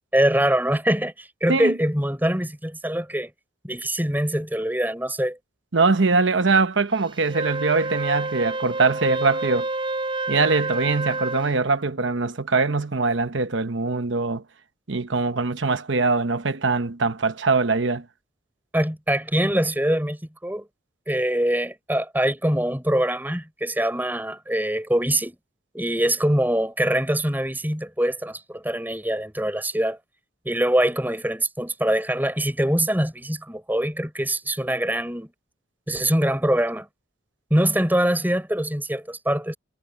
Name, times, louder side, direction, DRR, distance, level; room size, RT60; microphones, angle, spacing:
voice 1, 0.1-3.3 3.6-5.4 18.7-20.7 21.1-25.4 25.7-30.0 30.4-35.3 35.9-36.9 37.5-39.6, right 1 dB, 10° right, 4.9 m, -23 dB
voice 2, 5.7-9.7 10.3-14.4 14.9-18.0, right 3 dB, 70° right, 1.0 m, -22 dB
Wind instrument woodwind instrument, 7.2-11.5, right 2 dB, 25° right, 4.3 m, -29 dB
head